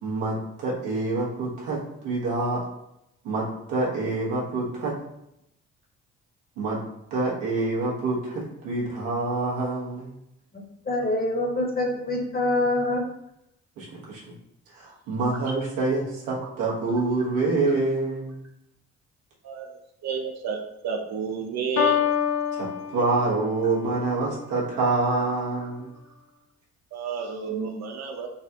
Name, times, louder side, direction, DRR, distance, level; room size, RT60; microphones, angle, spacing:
voice 1, 0.0-2.7 3.2-5.0 6.6-6.8 7.1-10.1 13.8-14.2 14.7-18.3 22.5-25.9 27.5-27.8, right 3 dB, 85° right, -5 dB, 1.2 m, -26 dB
voice 2, 10.5-13.0, left 1 dB, 30° left, 1 dB, 1.0 m, -25 dB
voice 3, 20.0-20.6 20.8-22.0 26.9-28.3, right 5 dB, 60° right, 3 dB, 0.5 m, -31 dB
Piano, 21.8-23.7, left 8 dB, 75° left, 0.7 m, -26 dB
4.0 x 2.3 x 2.8 m, 0.81 s
supercardioid pair, 65°, 30 cm